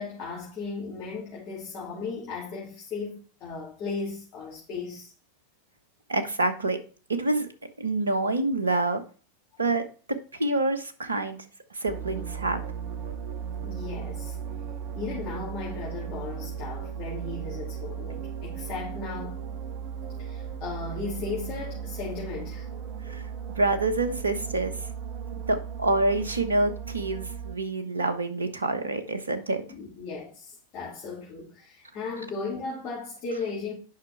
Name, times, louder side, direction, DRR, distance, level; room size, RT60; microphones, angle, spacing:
voice 1, 0.0-5.1 13.6-14.3 14.9-19.4 20.2-22.7 29.7-33.7, left 4 dB, 35° left, 2.8 m, -36 dB
voice 2, 6.1-6.8 7.1-7.5 7.8-9.0 9.6-9.8 10.4-11.4 11.7-12.6 23.1-23.2 23.5-24.7 25.3-29.6, right 2 dB, 75° right, 1.1 m, -27 dB
sound 1, 11.9-27.6, right 7 dB, 40° right, 0.8 m, -36 dB
9.3 x 5.8 x 3.4 m
figure-of-eight pair, 90°, 0 cm